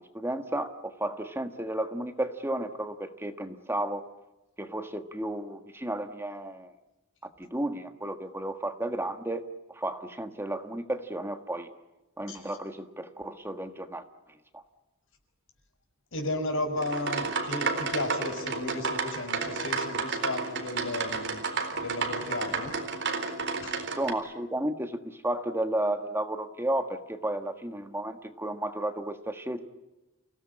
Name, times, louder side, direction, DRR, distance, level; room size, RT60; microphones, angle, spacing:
voice 1, 0.1-4.0 4.6-6.7 7.4-9.4 9.7-11.7 12.2-14.0 14.5-14.6 24.0-29.7, right 1 dB, 10° right, 7 dB, 1.5 m, -33 dB
voice 2, 16.1-21.4 21.8-22.8 23.6-23.7, left 2 dB, 65° left, 5 dB, 6.1 m, -34 dB
sound 1, 16.8-24.1, right 4 dB, 60° right, 4.1 m, -31 dB
29.0 x 18.0 x 9.8 m, 1.0 s
head